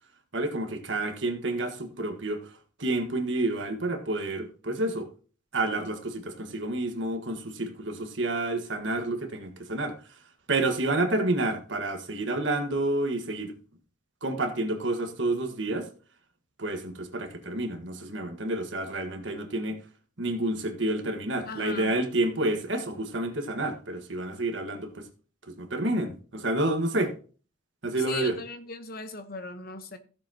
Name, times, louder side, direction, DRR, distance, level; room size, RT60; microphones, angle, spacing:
voice 1, 0.3-2.4 2.8-5.1 5.5-9.9 10.5-13.5 14.2-15.9 16.6-19.8 20.2-25.0 25.6-27.1 27.8-28.3, right 2 dB, 70° right, 1.6 m, -29 dB
voice 2, 21.5-21.9 28.1-30.0, left 3 dB, 50° left, 1.1 m, -38 dB
15.5 x 7.0 x 2.9 m
head